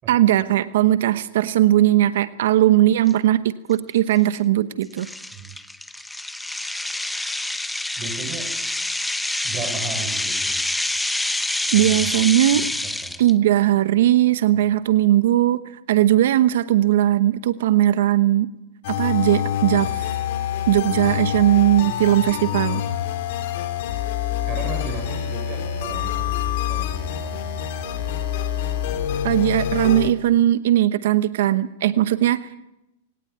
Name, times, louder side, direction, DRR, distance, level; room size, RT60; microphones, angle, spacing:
voice 1, 0.1-5.1 11.7-12.7 13.2-18.5 18.9-20.1 20.7-22.8 29.2-32.6, right 13 dB, 70° right, 13 dB, 1.0 m, -18 dB
sound 1, 3.1-3.2 3.7-3.9 4.3-4.4 5.0-13.3, left 1 dB, 5° left, 0.9 m, -27 dB
voice 2, 8.0-8.5 9.4-10.6 11.7-12.1 12.5-13.1 24.5-27.7 28.1-28.2, right 5 dB, 30° right, 3 dB, 6.1 m, -35 dB
sound 2, 18.8-30.1, left 10 dB, 60° left, 3.3 m, -26 dB
22.0 x 18.0 x 9.5 m, 0.92 s
hypercardioid pair, 135°, 0 cm